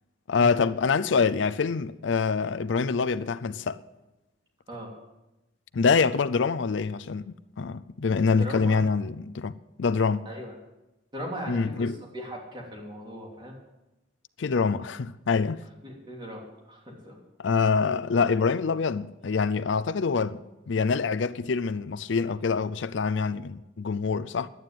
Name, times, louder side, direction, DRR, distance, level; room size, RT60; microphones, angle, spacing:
voice 1, 0.3-3.8 5.7-9.5 9.8-10.3 11.5-12.0 14.4-15.6 17.4-20.4 20.7-24.5, left 5 dB, 70° left, 0.5 m, -25 dB
voice 2, 8.4-8.8 10.2-10.5 11.1-13.5 15.8-17.2, equal, 25° right, 3.4 m, -39 dB
11.0 x 9.4 x 9.0 m
head